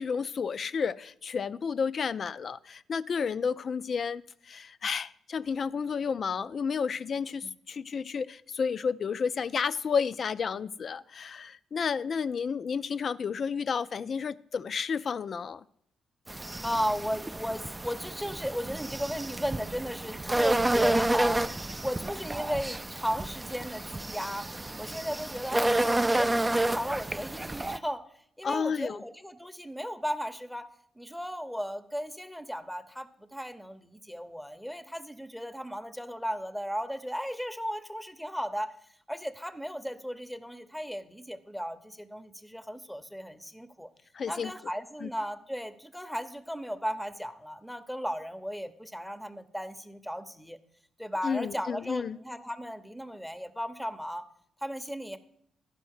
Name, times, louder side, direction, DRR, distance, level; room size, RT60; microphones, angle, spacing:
voice 1, 0.0-15.6 28.4-29.0 44.1-44.5 45.0-45.1 51.2-52.2, left 6 dB, 55° left, 0.3 m, -31 dB
voice 2, 16.3-21.4 21.8-24.5 24.8-28.0 28.4-30.7 31.0-38.7 39.1-43.9 44.2-50.6 51.0-54.2 54.6-55.2, equal, ahead, 0.7 m, -35 dB
sound 1, 16.3-27.8, right 1 dB, 20° right, 0.3 m, -30 dB
11.0 x 5.2 x 6.4 m
cardioid pair, 70°, 0 cm